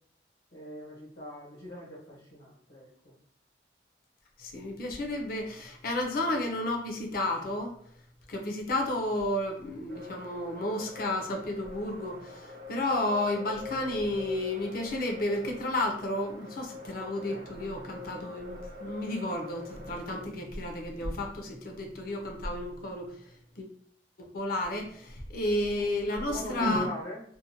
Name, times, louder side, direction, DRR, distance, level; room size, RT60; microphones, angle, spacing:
voice 1, 0.5-3.2 25.7-27.2, left 1 dB, 85° left, -7 dB, 1.2 m, -41 dB
voice 2, 4.4-7.7 8.3-23.1 23.6-23.7 24.2-26.9, left 1 dB, 55° left, 3 dB, 0.5 m, -32 dB
sound 1, 9.9-20.2, left 2 dB, 65° right, 0.7 m, -45 dB
2.6 x 2.1 x 2.7 m, 0.64 s
head